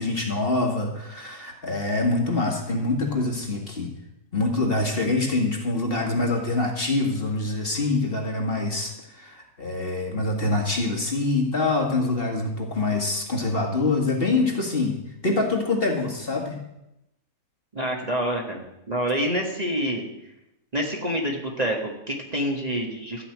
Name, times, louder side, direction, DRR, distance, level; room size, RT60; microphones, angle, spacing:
voice 1, 0.0-3.9 4.3-16.6, left 2 dB, 40° left, 1 dB, 2.1 m, -25 dB
voice 2, 17.7-20.1 20.7-23.2, equal, 25° right, 0 dB, 1.7 m, -27 dB
14.0 x 5.7 x 9.4 m, 0.87 s
omnidirectional pair, 1.6 m